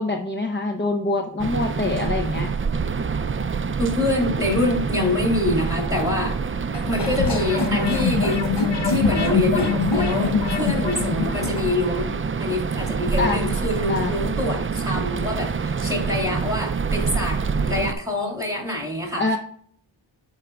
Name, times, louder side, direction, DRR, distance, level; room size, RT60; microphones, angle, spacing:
voice 1, 0.0-2.5 13.2-13.4 13.9-14.1 19.2-19.4, left 2 dB, 25° left, 3 dB, 0.8 m, -24 dB
sound 1, 1.4-17.9, right 5 dB, 30° right, 0.3 m, -26 dB
voice 2, 3.8-6.4 6.9-8.5 8.8-19.3, left 2 dB, 5° right, 1 dB, 2.7 m, -25 dB
sound 2, 6.7-11.7, left 5 dB, 60° left, 1.0 m, -24 dB
12.5 x 4.9 x 2.3 m, 0.64 s
wide cardioid pair, 50°, 47 cm